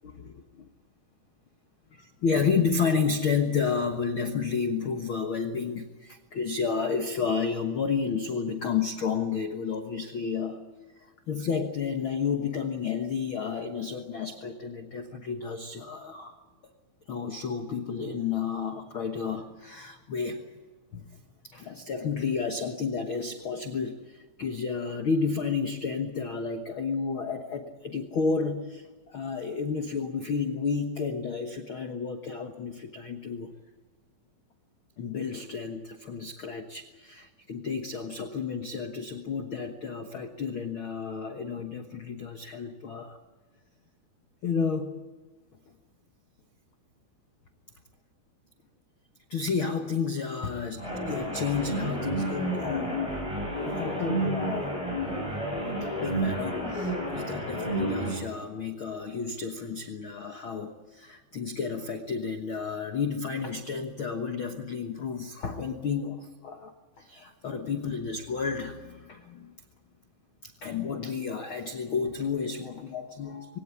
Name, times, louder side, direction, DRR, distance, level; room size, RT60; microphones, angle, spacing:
voice 1, 0.0-0.6 1.9-10.6 11.3-16.4 17.1-20.5 20.9-21.1 21.4-33.5 35.0-43.2 44.4-45.0 49.3-53.0 53.6-54.7 55.0-55.1 55.4-55.5 55.8-69.5 70.4-73.6, left 5 dB, 75° left, 6 dB, 1.2 m, -31 dB
sound 1, 50.8-58.2, right 1 dB, 10° right, 6.3 m, -30 dB
23.0 x 18.0 x 9.8 m, 1.3 s
omnidirectional pair, 4.4 m